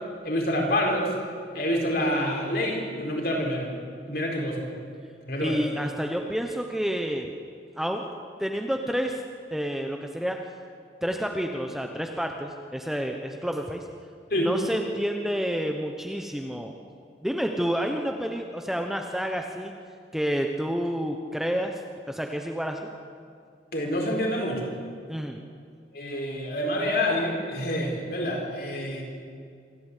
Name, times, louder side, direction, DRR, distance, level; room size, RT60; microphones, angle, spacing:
voice 1, 0.2-1.1 1.5-3.7 4.1-4.7 5.3-5.6 14.3-14.5 23.7-24.7 25.9-29.0, equal, 55° left, 0 dB, 4.2 m, -27 dB
voice 2, 5.4-7.3 7.8-8.1 8.4-9.2 9.5-10.4 11.0-13.9 14.4-16.7 17.2-19.7 20.1-21.7 22.1-22.8 25.1-25.4, equal, ahead, 3 dB, 0.9 m, -29 dB
26.5 x 12.5 x 8.4 m, 2.3 s
head